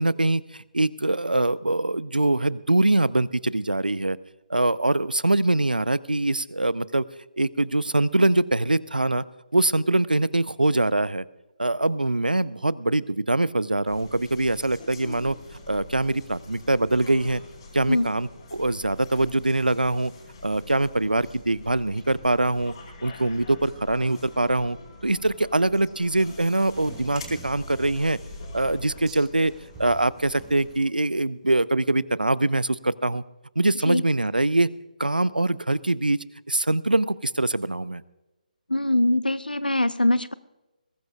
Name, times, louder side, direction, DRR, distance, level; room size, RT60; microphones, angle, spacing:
voice 1, 0.0-4.2 4.5-7.0 7.4-9.2 9.5-11.2 11.6-15.4 15.7-17.4 17.7-20.1 20.4-22.7 23.0-24.8 25.0-28.2 28.5-29.5 29.8-33.2 33.6-34.7 35.0-38.0, right 2 dB, 80° right, 20 dB, 0.6 m, -23 dB
sound 1, 13.9-30.8, left 2 dB, 35° left, 4.4 m, -44 dB
sound 2, 26.6-31.2, right 4 dB, 10° right, 1.4 m, -47 dB
voice 2, 38.7-40.3, left 1 dB, 85° left, 16 dB, 0.8 m, -22 dB
21.5 x 17.5 x 2.4 m, 1.0 s
figure-of-eight pair, 145°, 5 cm